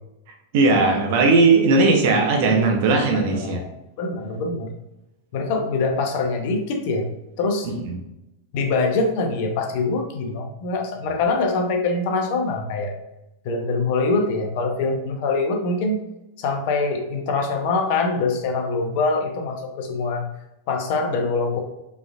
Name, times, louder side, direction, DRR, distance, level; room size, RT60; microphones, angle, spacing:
voice 1, 0.5-3.6 7.6-7.9, right 3 dB, 50° right, 2 dB, 0.9 m, -18 dB
voice 2, 3.1-3.7 4.0-4.7 5.3-7.1 7.4-7.7 8.5-13.0 13.4-16.1 16.4-20.3 20.7-21.6, left 3 dB, 45° left, 3 dB, 0.8 m, -24 dB
4.9 x 3.4 x 2.4 m, 0.92 s
figure-of-eight pair, 90°, 0 cm